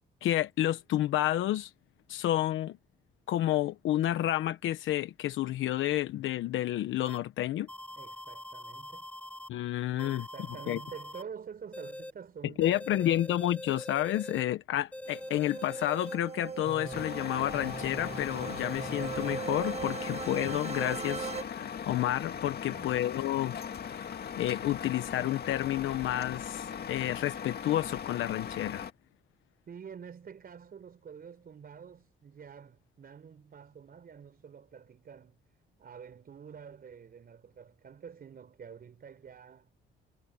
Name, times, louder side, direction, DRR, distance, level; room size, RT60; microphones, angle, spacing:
voice 1, 0.2-1.7 2.1-2.8 3.3-7.7 9.5-10.3 10.7-10.8 12.4-23.6 23.9-24.1 24.4-28.9, left 13 dB, 80° left, 1.0 m, -30 dB
sound 1, 7.0-7.2 7.7-9.5 10.0-11.2 11.7-12.1 12.6-14.4 14.9-16.2 16.6-17.0 17.5-19.3, left 1 dB, 5° left, 7.9 m, -43 dB
voice 2, 7.9-9.1 9.9-13.1 22.6-22.9 29.7-35.4 35.8-39.7, right 7 dB, 50° right, 4.6 m, -48 dB
sound 2, 15.1-21.4, right 5 dB, 30° right, 1.7 m, -39 dB
Truck, 16.9-28.9, left 7 dB, 55° left, 2.1 m, -39 dB
cardioid pair, 90°, 20 cm